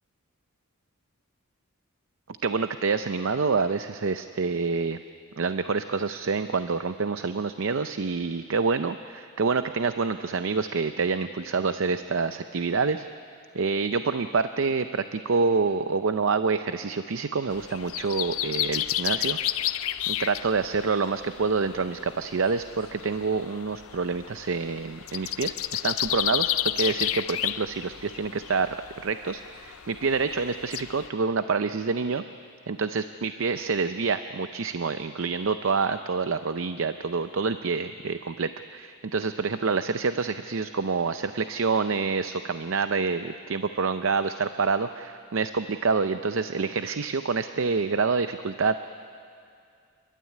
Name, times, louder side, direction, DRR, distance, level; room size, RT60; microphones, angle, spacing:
voice 1, 2.4-5.0 5.4-13.1 13.5-19.4 19.7-19.8 20.1-28.8 29.0-32.2 32.7-48.9, right 4 dB, 60° right, 10 dB, 0.5 m, -27 dB
sound 1, 17.5-31.1, left 13 dB, 75° left, 0.6 m, -32 dB
29.5 x 12.5 x 9.7 m, 2.4 s
head